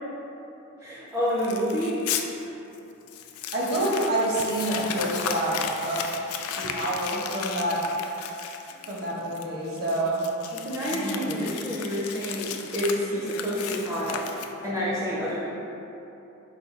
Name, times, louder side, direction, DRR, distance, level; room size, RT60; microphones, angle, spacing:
voice 1, 0.8-2.0 10.5-14.2 14.6-15.5, equal, 15° right, -8 dB, 0.5 m, -28 dB
Crumpling crinkling, 1.4-2.2 2.7-2.8 3.1-14.8, left 7 dB, 85° left, 0.3 m, -35 dB
voice 2, 3.5-5.6 5.8-6.1 6.5-7.8 8.9-10.2 10.9-11.4, right 1 dB, 50° right, -5 dB, 0.9 m, -27 dB
4.6 x 2.3 x 3.9 m, 2.9 s
head